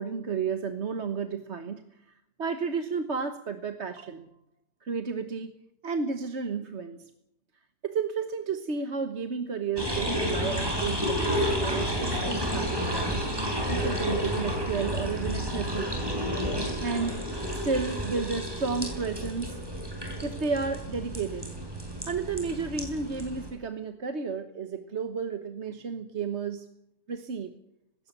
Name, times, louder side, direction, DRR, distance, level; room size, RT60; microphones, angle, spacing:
voice 1, 0.0-1.8 2.4-4.3 4.8-5.5 5.8-7.0 7.8-13.2 13.7-15.9 16.8-17.2 17.6-19.6 20.2-21.5 22.1-26.7 27.1-27.5, right 5 dB, 45° right, 8 dB, 1.5 m, -32 dB
sound 1, 9.8-23.5, equal, 15° right, 6.0 m, -31 dB
19.5 x 17.0 x 8.2 m, 0.80 s
omnidirectional pair, 1.8 m